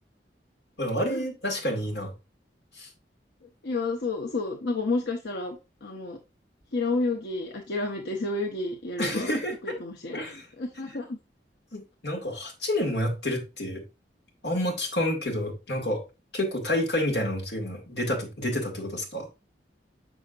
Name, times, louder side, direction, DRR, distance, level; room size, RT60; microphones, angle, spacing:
voice 1, 0.8-2.1 2.8-2.9 9.0-9.8 10.1-10.4 11.7-13.8 14.4-16.0 16.3-19.3, left 1 dB, 65° left, 2.0 m, -29 dB
voice 2, 3.6-6.2 6.7-9.3 9.6-10.2 10.6-11.2, left 3 dB, 80° left, 0.9 m, -30 dB
6.2 x 6.2 x 2.5 m
head